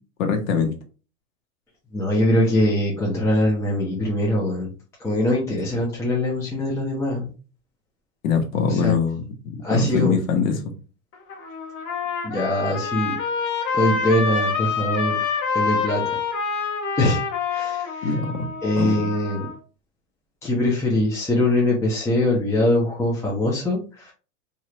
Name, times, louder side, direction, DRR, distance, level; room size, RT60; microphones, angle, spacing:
voice 1, 0.2-0.7 8.2-9.3 9.7-10.7 18.0-18.3 18.8-19.0, left 5 dB, 75° left, 5 dB, 1.0 m, -22 dB
voice 2, 1.9-4.7 5.0-7.3 8.7-8.9 9.6-10.2 12.2-13.2 13.7-15.2 15.5-16.0 17.0-17.2 17.5-18.1 18.6-19.5 20.4-24.1, left 1 dB, 5° left, -4 dB, 0.6 m, -22 dB
Trumpet, 11.1-19.6, left 5 dB, 35° left, 1.0 m, -27 dB
3.0 x 2.5 x 2.8 m, 0.35 s
hypercardioid pair, 120°, 40 cm